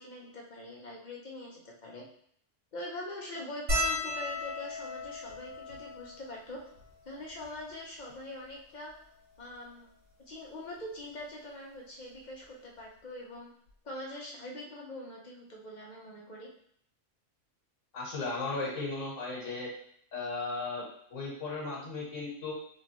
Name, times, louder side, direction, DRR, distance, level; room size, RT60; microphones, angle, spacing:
voice 1, 0.0-2.0 2.7-6.6 7.0-8.9 9.4-9.9 10.3-13.5 13.8-16.5, left 1 dB, 40° left, -2 dB, 0.8 m, -43 dB
sound 1, 3.7-8.3 9.0-9.1 9.3-9.5 10.8-11.0 12.5-12.6 12.8-13.0, left 1 dB, 80° right, 2.2 m, -36 dB
voice 2, 17.9-19.7 20.1-22.5, left 3 dB, 85° left, -3 dB, 1.5 m, -36 dB
3.6 x 3.2 x 3.0 m, 0.64 s
omnidirectional pair, 1.3 m